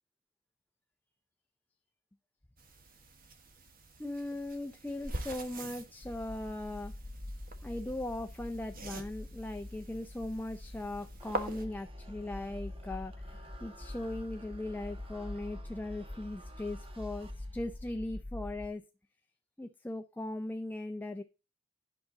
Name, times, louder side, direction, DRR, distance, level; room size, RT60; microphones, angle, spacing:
sound 1, 2.6-11.6, right 2 dB, 50° right, 1.3 m, -45 dB
voice 1, 4.0-6.9 7.6-18.8 19.6-21.2, left 1 dB, 10° left, 0.5 m, -39 dB
sound 2, 6.0-18.7, left 1 dB, 10° right, 2.5 m, -45 dB
sound 3, 11.2-17.8, right 2 dB, 30° right, 1.3 m, -56 dB
10.5 x 6.6 x 3.8 m
head